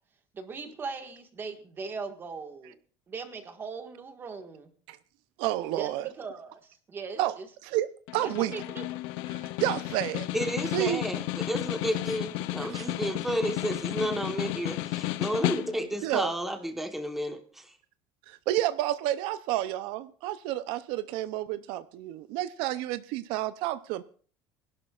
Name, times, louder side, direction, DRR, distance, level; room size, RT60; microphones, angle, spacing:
voice 1, 0.3-2.8 3.1-4.7 5.7-7.5 8.2-8.8, right 4 dB, 25° right, 1.6 m, -39 dB
voice 2, 5.4-6.1 7.2-7.3 7.6-7.9 8.1-8.5 9.3-10.3 10.7-11.0 12.6-12.9 16.0-16.3 18.3-24.0, right 14 dB, 75° right, 0.5 m, -30 dB
Snare drum, 8.1-16.0, left 17 dB, 80° left, 0.7 m, -33 dB
voice 3, 10.3-17.7, right 1 dB, 5° right, 1.1 m, -32 dB
23.5 x 11.5 x 2.4 m
cardioid pair, 160°, 9 cm